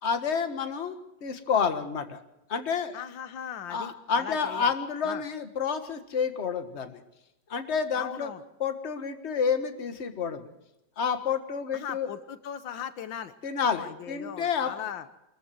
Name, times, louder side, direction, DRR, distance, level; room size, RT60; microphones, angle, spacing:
voice 1, 0.0-2.2 2.5-3.1 3.7-7.0 7.5-8.3 8.6-10.5 11.0-12.1 13.4-14.7, left 6 dB, 35° left, 8 dB, 1.7 m, -29 dB
voice 2, 2.9-4.7 5.0-5.2 8.0-8.4 11.7-13.3 13.7-15.1, left 8 dB, 80° left, 12 dB, 1.7 m, -38 dB
24.5 x 14.0 x 7.8 m, 0.91 s
omnidirectional pair, 2.1 m